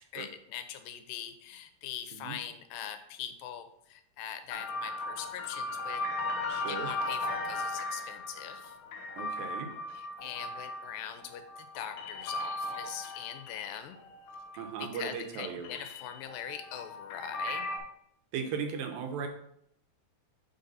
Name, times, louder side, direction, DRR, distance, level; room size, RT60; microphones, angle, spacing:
voice 1, 0.0-6.0 6.7-8.7 9.9-14.0 14.8-17.7, left 9 dB, 85° left, 8 dB, 2.3 m, -42 dB
sound 1, 4.5-14.7 15.0-17.8, left 2 dB, 70° left, 1.7 m, -37 dB
voice 2, 6.5-6.9 9.2-9.7 14.6-15.7 18.3-19.3, right 6 dB, 85° right, 5 dB, 2.6 m, -37 dB
5.7 x 3.9 x 5.5 m, 0.74 s
omnidirectional pair, 4.1 m